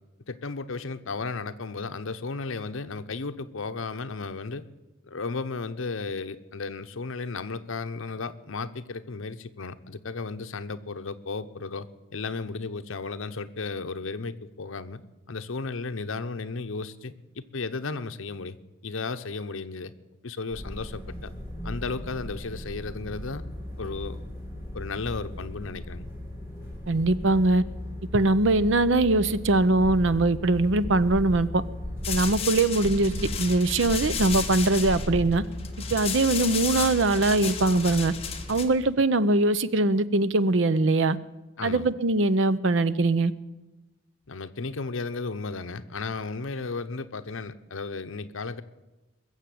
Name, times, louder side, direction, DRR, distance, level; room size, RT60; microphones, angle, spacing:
voice 1, 0.3-4.6 5.1-15.0 15.3-18.6 18.8-19.9 20.2-21.3 21.6-23.4 23.8-24.2 24.7-26.1 41.6-41.9 44.3-48.6, left 4 dB, 80° left, 10 dB, 0.9 m, -34 dB
sound 1, 20.5-38.6, left 1 dB, 10° right, 6.4 m, -38 dB
voice 2, 26.9-27.6 28.1-31.6 32.1-33.1 33.4-35.4 35.9-38.1 38.5-41.2 41.6-43.3, right 2 dB, 65° right, 15 dB, 0.7 m, -22 dB
sound 2, 29.8-30.4 30.8-35.5, left 1 dB, 5° left, 5.9 m, -35 dB
sound 3, 32.0-38.7, left 7 dB, 30° left, 1.5 m, -33 dB
21.0 x 7.5 x 8.5 m, 1.1 s
head